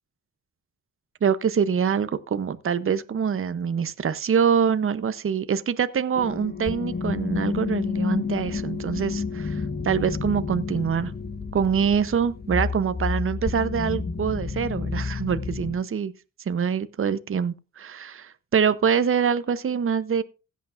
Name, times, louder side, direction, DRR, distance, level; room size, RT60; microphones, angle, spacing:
voice 1, 1.2-11.1 11.5-16.1 16.5-20.2, right 7 dB, 40° right, 0.8 m, -25 dB
sound 1, 6.2-15.8, left 4 dB, 30° left, 1.0 m, -30 dB
16.5 x 8.4 x 2.5 m
cardioid pair, 75°, 34 cm